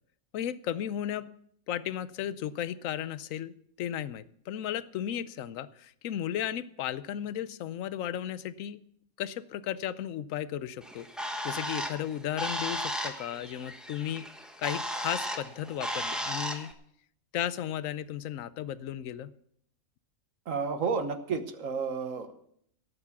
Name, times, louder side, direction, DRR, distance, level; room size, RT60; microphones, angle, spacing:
voice 1, 0.3-1.3 1.7-8.8 9.2-11.1 11.4-14.3 14.6-16.7 17.3-19.3, left 11 dB, 75° left, 15 dB, 1.1 m, -35 dB
Bird, 10.8-16.7, equal, ahead, 1.2 m, -35 dB
voice 2, 20.5-22.5, right 5 dB, 70° right, 9 dB, 1.4 m, -31 dB
17.5 x 7.1 x 7.1 m, 0.68 s
omnidirectional pair, 1.4 m